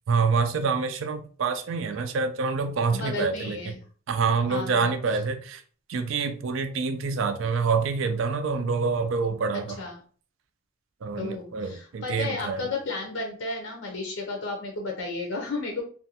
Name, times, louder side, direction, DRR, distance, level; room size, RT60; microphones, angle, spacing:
voice 1, 0.1-3.8 4.1-5.6 5.9-9.8 11.0-12.7, right 5 dB, 65° right, 0.4 m, -26 dB
voice 2, 2.9-3.7 4.5-4.9 9.8-9.9 11.2-15.8, left 3 dB, 70° left, 0.6 m, -33 dB
2.4 x 2.2 x 2.8 m
head